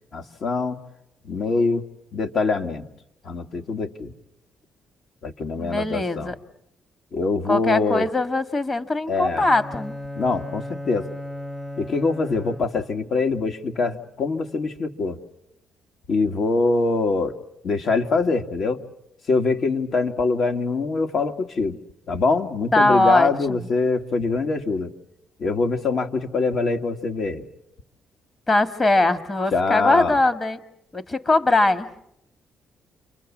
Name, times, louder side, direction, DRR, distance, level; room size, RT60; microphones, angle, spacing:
voice 1, 0.1-0.8 1.2-1.9 2.1-2.9 3.2-4.1 5.2-6.3 7.1-8.1 9.1-9.5 10.1-11.1 11.8-15.2 16.1-17.4 17.6-18.8 19.3-21.8 22.1-24.9 25.4-27.5 29.5-30.2, left 3 dB, 60° left, 5 dB, 1.7 m, -24 dB
voice 2, 5.5-6.3 7.5-10.0 22.7-23.7 28.5-30.6 30.9-31.9, left 2 dB, 30° left, 9 dB, 1.7 m, -21 dB
Bowed string instrument, 9.3-13.0, left 1 dB, 15° left, 0.9 m, -36 dB
29.5 x 25.0 x 7.3 m, 0.82 s
cardioid pair, 90°, 0 cm